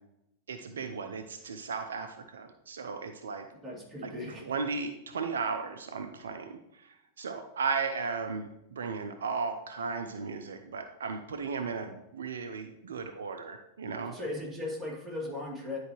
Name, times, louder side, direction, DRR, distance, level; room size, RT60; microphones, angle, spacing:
voice 1, 0.5-3.5 4.0-4.1 4.4-14.2, right 5 dB, 65° right, 7 dB, 0.5 m, -35 dB
voice 2, 3.6-4.4 14.1-15.8, left 2 dB, ahead, -6 dB, 2.6 m, -37 dB
10.0 x 4.7 x 3.1 m, 0.84 s
figure-of-eight pair, 90°, 0 cm